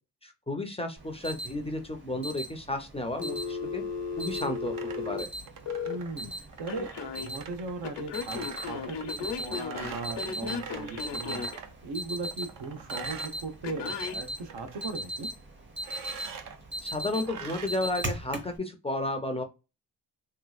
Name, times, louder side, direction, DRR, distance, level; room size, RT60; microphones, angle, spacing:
voice 1, 0.2-3.8 4.2-4.7 5.1-5.3 16.8-19.4, left 2 dB, 15° left, 0.4 m, -32 dB
Alarm, 1.0-18.6, right 1 dB, 30° right, 0.8 m, -40 dB
Telephone, 3.2-6.0 6.7-7.3 7.8-11.6 13.6-14.2, left 5 dB, 85° left, 0.8 m, -35 dB
sound 1, 4.4-11.8 12.2-14.1 14.4-14.9 15.8-16.6 17.2-17.7, right 6 dB, 55° right, 0.5 m, -44 dB
voice 2, 5.8-6.3 6.6-11.5 11.8-15.3, right 3 dB, 80° right, 1.0 m, -38 dB
3.3 x 2.9 x 2.3 m
wide cardioid pair, 165°, 41 cm